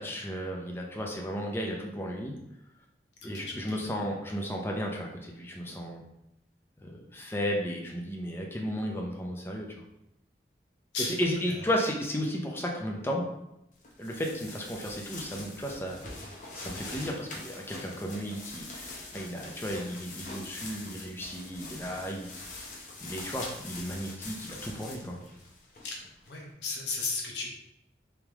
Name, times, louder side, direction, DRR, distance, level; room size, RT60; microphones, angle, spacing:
voice 1, 0.0-2.4 3.2-6.0 6.8-9.8 11.0-13.2 14.0-16.1 16.5-22.5 23.0-25.2, equal, 15° left, 0 dB, 0.5 m, -34 dB
voice 2, 3.2-3.8 10.9-11.6 25.8-27.5, left 3 dB, 85° left, -1 dB, 1.0 m, -35 dB
sound 1, 13.8-26.4, left 2 dB, 45° left, 0.7 m, -44 dB
3.5 x 3.0 x 3.5 m, 0.84 s
head